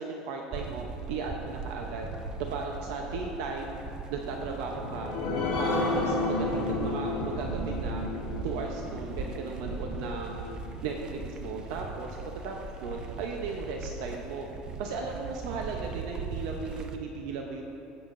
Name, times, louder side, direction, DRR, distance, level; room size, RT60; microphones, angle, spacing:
voice 1, 0.0-2.1 2.5-3.8 4.1-5.1 5.6-8.0 8.4-12.2 12.4-14.5 14.8-17.6, right 4 dB, 75° right, 1 dB, 0.7 m, -36 dB
sound 1, 0.5-17.0, right 5 dB, 30° right, 0.5 m, -40 dB
sound 2, 2.0-14.2, left 2 dB, 15° right, 1.5 m, -46 dB
sound 3, 4.6-11.6 12.1-12.2 12.5-12.6, left 2 dB, 55° left, 2.2 m, -32 dB
16.0 x 7.1 x 2.5 m, 2.9 s
cardioid pair, 155°, 3 cm